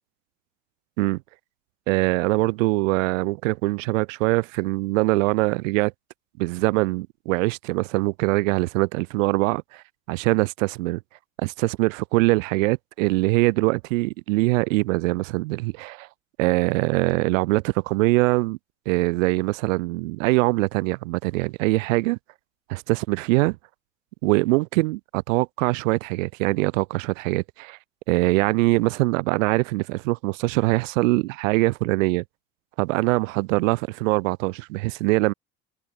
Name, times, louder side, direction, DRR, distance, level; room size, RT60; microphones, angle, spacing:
voice 1, 1.9-5.9 6.4-11.0 11.4-16.1 16.4-18.6 18.8-22.2 22.7-23.6 24.2-27.8 28.1-32.2 32.8-35.3, right 23 dB, 80° right, 1.6 m, -23 dB
hypercardioid pair, 80°, 38 cm